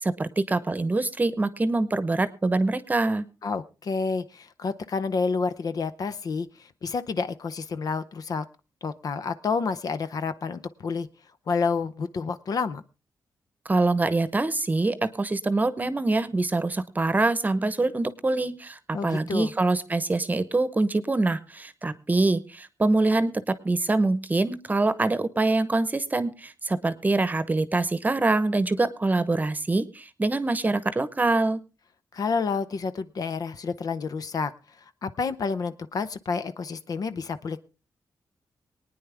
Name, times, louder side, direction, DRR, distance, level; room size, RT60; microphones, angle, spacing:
voice 1, 0.0-3.3 13.6-31.6, right 2 dB, 25° right, 14 dB, 0.9 m, -25 dB
voice 2, 3.4-8.5 8.8-11.1 11.5-12.8 18.9-19.5 32.1-34.5 35.0-37.6, left 5 dB, 60° left, 12 dB, 0.8 m, -29 dB
23.5 x 9.5 x 3.5 m, 0.31 s
wide cardioid pair, 105°, 7 cm